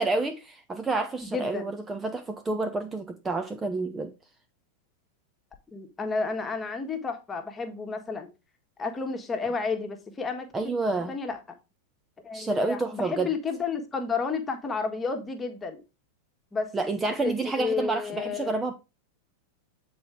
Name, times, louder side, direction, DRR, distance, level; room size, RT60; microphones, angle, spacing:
voice 1, 0.0-4.1 10.5-11.1 12.3-13.3 16.7-18.7, right 3 dB, 15° right, 0.8 m, -29 dB
voice 2, 1.2-1.7 5.7-8.3 8.8-10.7 11.1-11.4 12.2-15.8 16.5-16.7 17.2-18.5, left 4 dB, 15° left, 1.6 m, -31 dB
8.8 x 4.4 x 4.9 m
figure-of-eight pair, 90°, 0 cm